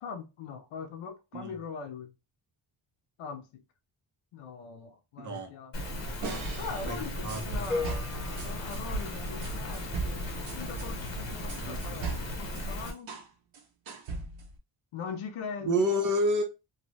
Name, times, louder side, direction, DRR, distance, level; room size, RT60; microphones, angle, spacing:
voice 1, 0.0-2.1 3.2-3.6 4.3-5.7 6.5-10.2 10.6-13.1 14.9-15.8, left 5 dB, 85° left, 0.6 m, -41 dB
voice 2, 5.2-5.5 6.9-7.0 7.2-7.6 11.5-12.0 15.6-16.4, equal, 40° right, 0.7 m, -29 dB
Rain, 5.7-12.9, equal, 60° left, 1.1 m, -36 dB
sound 1, 6.2-8.8 9.4-13.3 13.5-14.6, right 4 dB, 70° right, 0.8 m, -40 dB
sound 2, 7.7-9.8, left 3 dB, 5° right, 0.4 m, -37 dB
2.8 x 2.3 x 3.0 m
wide cardioid pair, 170°, 49 cm